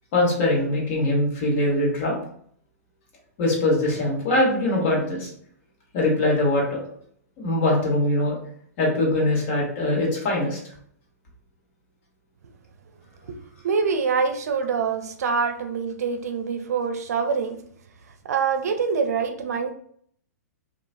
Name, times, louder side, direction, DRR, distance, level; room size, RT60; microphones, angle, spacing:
voice 1, 0.1-2.1 3.4-5.3 5.9-6.8 7.4-8.3 8.8-10.6, left 1 dB, 50° left, -2 dB, 1.2 m, -22 dB
voice 2, 13.6-17.6 18.3-19.7, right 5 dB, 65° right, 7 dB, 0.5 m, -25 dB
3.0 x 2.3 x 2.5 m, 0.63 s
hypercardioid pair, 115°, 9 cm